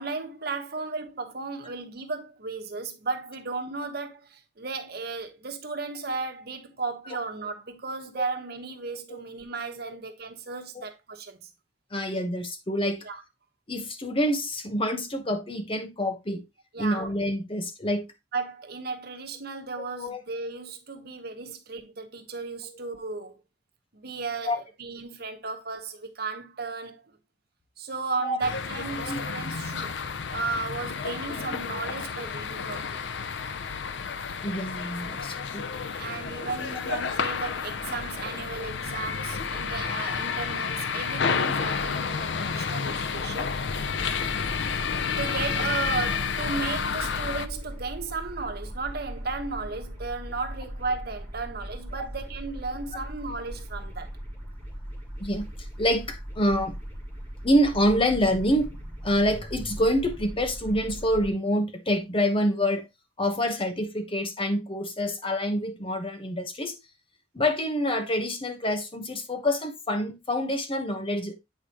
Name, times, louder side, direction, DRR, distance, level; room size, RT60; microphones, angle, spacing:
voice 1, 0.0-11.5 13.0-13.2 16.7-17.0 18.3-23.4 23.9-27.1 27.8-33.1 36.0-43.6 45.2-54.1, right 4 dB, 60° right, 1.2 m, -34 dB
voice 2, 11.9-13.1 13.7-16.4 16.8-18.1 20.0-20.2 24.5-24.6 28.2-28.4 29.1-29.2 31.1-31.2 34.4-35.7 36.7-36.9 38.3-38.4 55.2-55.5 55.8-56.8 57.4-62.8 63.2-66.7 67.3-71.3, equal, 30° left, 1.1 m, -27 dB
sound 1, 28.4-47.5, left 6 dB, 70° left, 0.6 m, -30 dB
sound 2, 43.6-61.3, equal, 15° left, 3.4 m, -39 dB
8.2 x 4.9 x 2.9 m
head